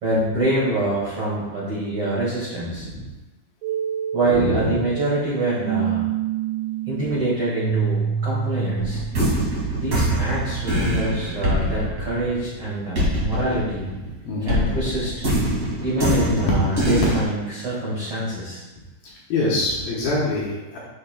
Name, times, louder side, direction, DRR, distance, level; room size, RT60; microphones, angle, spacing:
voice 1, 0.0-2.9 4.1-6.1 6.9-9.0 9.8-13.9 14.4-15.2 15.8-18.6, right 1 dB, 45° right, -9 dB, 2.0 m, -25 dB
voice 2, 2.7-3.1 4.3-4.8 9.6-10.1 13.9-14.6 19.0-20.8, left 2 dB, 70° left, -6 dB, 2.5 m, -26 dB
sound 1, 3.6-11.5, right 8 dB, 85° right, 2.7 m, -28 dB
sound 2, 8.8-14.1 14.5-17.2, right 1 dB, 65° right, 0.9 m, -24 dB
8.5 x 6.9 x 2.2 m, 1.1 s
omnidirectional pair, 5.1 m